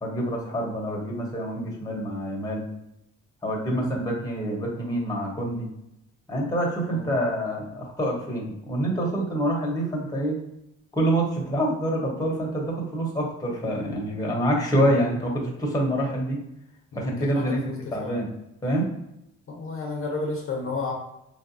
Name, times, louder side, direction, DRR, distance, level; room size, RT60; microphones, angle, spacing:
voice 1, 0.0-2.6 3.4-5.7 6.3-10.4 10.9-16.4 16.9-17.6 17.9-18.3 18.6-18.9, right 1 dB, 10° left, -1 dB, 1.0 m, -26 dB
voice 2, 16.9-18.2 19.5-20.9, left 3 dB, 45° left, 0 dB, 0.8 m, -32 dB
3.4 x 2.6 x 2.7 m, 0.85 s
cardioid pair, 90°, 30 cm